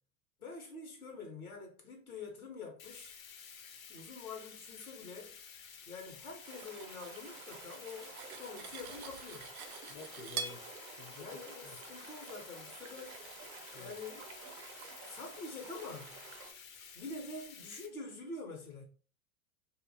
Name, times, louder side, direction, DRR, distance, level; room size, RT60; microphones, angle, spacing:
voice 1, 0.4-3.2 3.9-5.3 5.9-9.5 11.2-13.2 13.7-14.5 15.0-16.2 16.9-18.8, left 3 dB, 90° left, 1.0 m, -46 dB
Bathtub (filling or washing), 2.8-17.9, left 7 dB, 70° left, 0.6 m, -52 dB
sound 1, 6.4-16.5, right 5 dB, 35° right, 0.5 m, -52 dB
Cutlery silverware, 7.4-10.6, right 6 dB, 80° right, 0.5 m, -44 dB
voice 2, 9.9-10.7 11.0-11.8 13.7-14.0, left 4 dB, 20° left, 0.4 m, -50 dB
2.4 x 2.2 x 2.6 m
hypercardioid pair, 95°, 42 cm